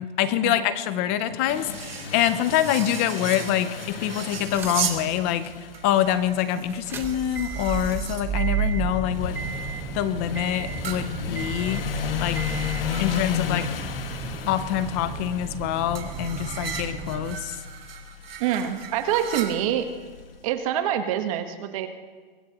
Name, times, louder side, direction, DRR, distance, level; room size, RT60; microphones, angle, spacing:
voice 1, 0.0-5.5 5.8-9.4 9.9-11.8 12.2-12.6 13.0-13.7 14.5-17.6, left 11 dB, 15° left, 13 dB, 0.3 m, -25 dB
sound 1, 1.5-20.3, left 7 dB, 75° left, 1.7 m, -35 dB
sound 2, 1.6-5.1 5.7-8.3 10.8-13.4 15.9-20.0, right 8 dB, 80° right, 2.5 m, -37 dB
sound 3, 4.5-5.0 5.4-5.5 6.7-17.4, right 4 dB, 10° right, 0.9 m, -32 dB
voice 2, 18.4-19.9 20.4-21.9, right 10 dB, 35° right, 8 dB, 1.1 m, -25 dB
23.5 x 20.0 x 2.9 m, 1.5 s
hypercardioid pair, 155°, 29 cm